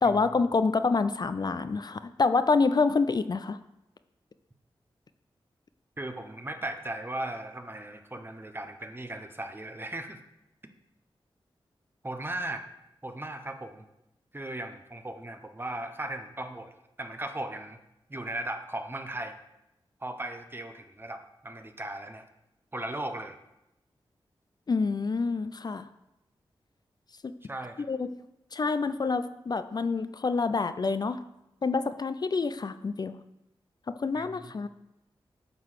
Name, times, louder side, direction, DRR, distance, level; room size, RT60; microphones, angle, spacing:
voice 1, 0.0-3.6 24.7-25.9 27.8-28.1 28.5-31.2 31.6-33.2 33.9-34.7, left 4 dB, 45° left, 11 dB, 0.4 m, -27 dB
voice 2, 6.0-10.2 12.0-12.7 13.0-13.9 14.3-16.7 17.0-17.8 18.1-19.4 20.0-22.2 22.7-23.4 27.5-27.8 34.1-34.5, right 1 dB, 25° right, 7 dB, 0.9 m, -37 dB
9.4 x 3.9 x 6.5 m, 0.87 s
cardioid pair, 60°, 10 cm